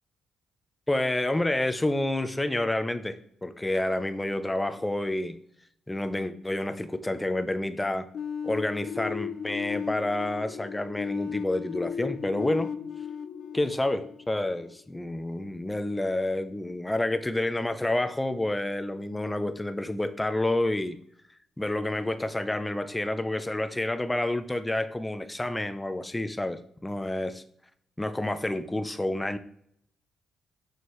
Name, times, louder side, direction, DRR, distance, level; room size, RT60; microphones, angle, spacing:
voice 1, 0.9-5.4 5.9-8.1 8.4-12.7 13.5-21.0 21.6-27.4 28.0-29.4, left 1 dB, 10° left, 10 dB, 0.6 m, -29 dB
sound 1, 8.1-14.9, left 7 dB, 65° left, 0.4 m, -36 dB
6.8 x 6.6 x 3.2 m, 0.67 s
cardioid pair, 90°, 0 cm